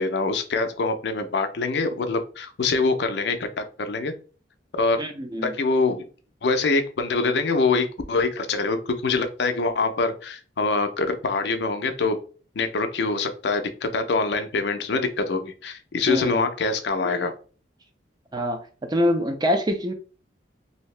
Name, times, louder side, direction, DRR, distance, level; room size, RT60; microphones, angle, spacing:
voice 1, 0.0-4.1 4.7-5.0 5.4-6.0 6.4-12.2 12.5-17.3, left 3 dB, 65° left, 0.5 m, -24 dB
voice 2, 5.0-5.5 16.1-16.4 18.3-18.6 18.9-19.9, equal, 20° right, 0.4 m, -24 dB
2.7 x 2.7 x 3.2 m
head